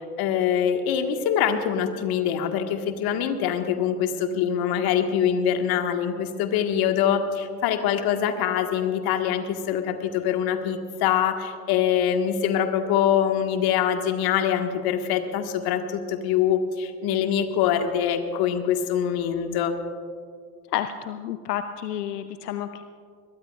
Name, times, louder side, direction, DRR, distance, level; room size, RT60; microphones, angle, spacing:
voice 1, 0.2-19.7, left 9 dB, 50° left, 5 dB, 1.8 m, -24 dB
voice 2, 20.7-22.8, left 10 dB, 80° left, 10 dB, 0.8 m, -30 dB
23.0 x 21.0 x 2.5 m, 2.1 s
hypercardioid pair, 80°, 47 cm